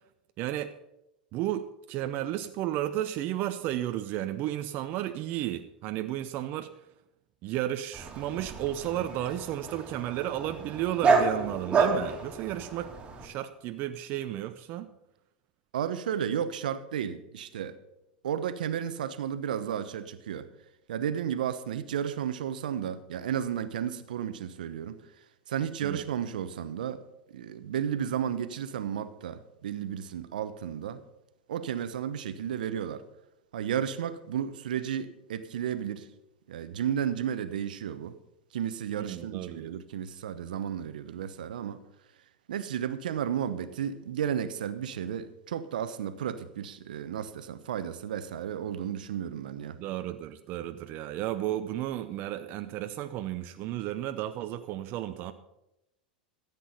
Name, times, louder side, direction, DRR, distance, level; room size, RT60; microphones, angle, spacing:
voice 1, 0.4-0.7 1.3-6.7 7.4-12.9 13.2-14.9 25.8-26.0 39.0-39.7 49.8-55.3, right 13 dB, 45° right, 0.7 m, -33 dB
Dog, 7.9-13.3, right 4 dB, 20° right, 2.7 m, -29 dB
voice 2, 15.7-17.7 18.2-20.4 20.9-25.0 25.5-27.0 27.3-31.0 31.5-33.0 33.5-36.1 36.5-38.2 38.5-41.8 42.5-49.8, right 9 dB, 70° right, 1.0 m, -33 dB
14.0 x 8.5 x 5.6 m
hypercardioid pair, 90°, 5 cm